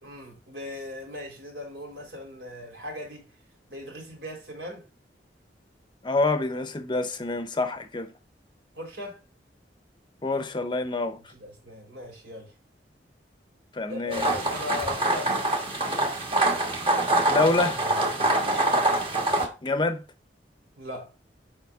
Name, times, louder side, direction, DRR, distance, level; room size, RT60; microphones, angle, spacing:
voice 1, 0.0-3.3 3.7-4.9 8.7-9.2 11.3-12.5 13.9-15.7 18.2-18.6 20.8-21.1, left 2 dB, 80° right, 3.3 m, -39 dB
voice 2, 6.0-8.1 10.2-11.2 13.7-14.3 17.3-17.9 19.6-20.0, left 2 dB, 25° left, 0.7 m, -26 dB
sound 1, 14.1-19.5, right 1 dB, 30° right, 1.3 m, -25 dB
7.1 x 5.1 x 3.6 m
head